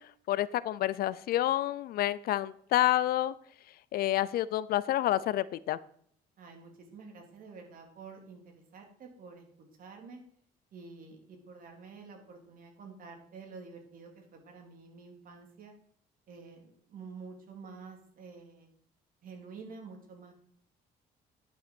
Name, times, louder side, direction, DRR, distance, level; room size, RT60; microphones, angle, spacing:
voice 1, 0.3-3.3 3.9-5.8, left 14 dB, 65° left, 18 dB, 0.4 m, -28 dB
voice 2, 6.4-9.4 9.8-10.2 10.7-15.7 16.3-18.7 19.2-20.3, right 4 dB, 55° right, 2 dB, 2.6 m, -49 dB
11.0 x 5.9 x 4.4 m, 0.65 s
cardioid pair, 110°, 17 cm